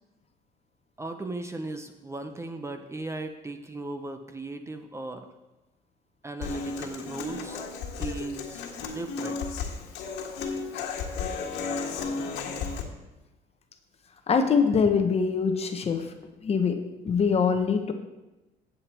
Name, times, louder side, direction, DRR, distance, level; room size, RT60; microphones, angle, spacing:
voice 1, 1.0-5.3 6.2-7.7 8.0-9.6, right 2 dB, 15° right, 7 dB, 0.7 m, -37 dB
Human voice / Acoustic guitar, 6.4-12.8, left 5 dB, 85° left, 1.7 m, -33 dB
voice 2, 14.3-16.1 16.4-17.9, left 5 dB, 35° left, 7 dB, 0.9 m, -24 dB
8.5 x 7.9 x 4.3 m, 1.0 s
cardioid pair, 110°, 17 cm